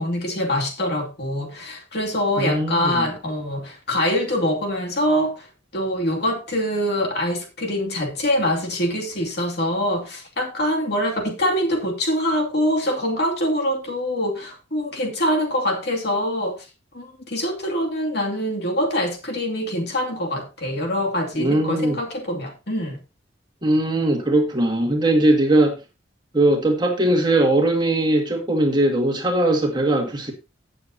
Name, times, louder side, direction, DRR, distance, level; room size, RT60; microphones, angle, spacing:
voice 1, 0.0-5.5 5.7-16.7 16.9-23.0, equal, 55° left, 2.6 m, -24 dB
voice 2, 2.4-3.1 21.4-22.0 23.6-25.8 26.3-30.3, right 1 dB, 25° right, 1.9 m, -20 dB
16.0 x 6.9 x 2.8 m
head